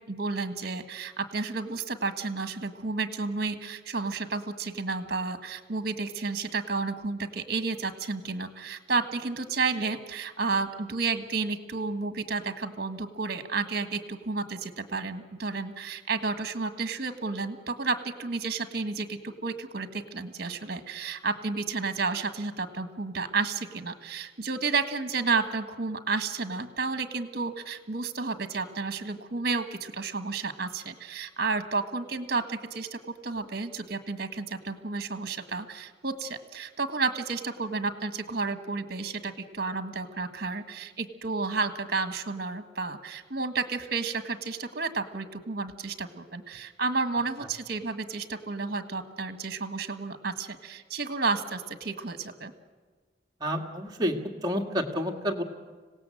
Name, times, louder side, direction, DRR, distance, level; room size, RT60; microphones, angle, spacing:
voice 1, 0.1-52.5, right 4 dB, 55° right, 9 dB, 1.5 m, -31 dB
voice 2, 53.4-54.2 54.4-55.4, equal, 20° right, 2 dB, 1.8 m, -29 dB
25.5 x 17.5 x 7.7 m, 1.4 s
head